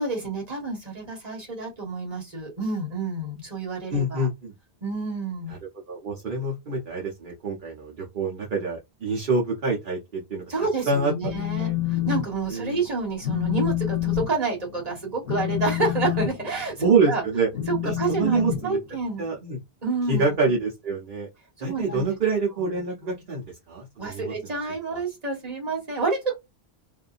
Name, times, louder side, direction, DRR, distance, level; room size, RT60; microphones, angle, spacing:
voice 1, 0.0-4.3 4.8-5.5 10.5-17.2 17.7-19.2 19.8-20.6 21.6-22.2 23.0-23.2 24.0-26.3, right 3 dB, 40° right, 1.5 m, -29 dB
voice 2, 3.9-4.5 5.9-10.4 10.9-11.7 12.5-12.8 16.8-17.5 17.8-18.8 19.2-19.6 20.1-21.3 21.6-23.4 23.7-24.5 24.9-25.0, right 3 dB, 55° right, 1.0 m, -26 dB
Telephone, 11.2-12.3 12.6-12.9 13.2-19.3, left 13 dB, 65° left, 1.1 m, -28 dB
2.8 x 2.6 x 2.4 m
omnidirectional pair, 1.1 m